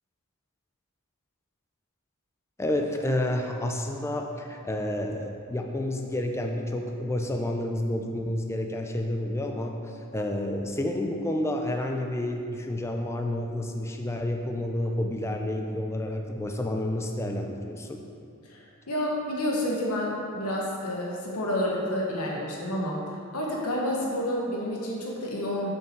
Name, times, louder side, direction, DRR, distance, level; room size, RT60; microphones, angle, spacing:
voice 1, 2.6-9.7 10.1-18.0, left 1 dB, 10° left, 2 dB, 0.4 m, -30 dB
voice 2, 18.4-23.0 23.3-25.7, left 1 dB, 85° left, -3 dB, 1.2 m, -29 dB
7.3 x 5.5 x 4.6 m, 2.5 s
head